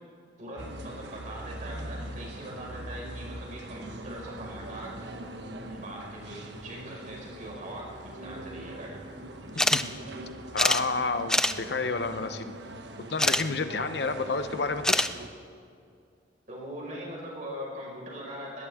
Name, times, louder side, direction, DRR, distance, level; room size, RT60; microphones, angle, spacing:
voice 1, 0.4-9.0 14.1-14.2 16.5-18.7, equal, 45° right, -3 dB, 5.2 m, -41 dB
sound 1, 0.6-15.3, right 1 dB, 70° right, 1.3 m, -42 dB
voice 2, 9.5-9.9 10.5-12.5 13.1-15.1, left 3 dB, 65° left, 9 dB, 0.8 m, -30 dB
sound 2, 9.6-9.8 10.1-10.2 10.6-10.8 11.3-11.5 13.2-13.4 14.8-15.1, left 1 dB, 5° left, 0.4 m, -23 dB
21.0 x 18.0 x 3.6 m, 2.4 s
head